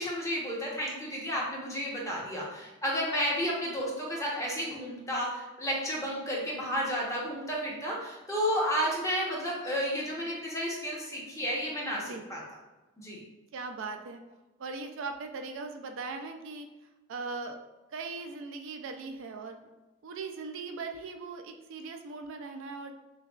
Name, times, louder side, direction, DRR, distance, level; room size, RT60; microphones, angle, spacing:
voice 1, 0.0-12.4 13.0-13.2, equal, 15° left, -4 dB, 0.9 m, -32 dB
voice 2, 13.5-14.2 14.6-16.7 17.1-17.6 17.9-19.7 20.0-22.9, right 4 dB, 65° right, 5 dB, 0.4 m, -39 dB
6.5 x 2.3 x 2.3 m, 1.1 s
head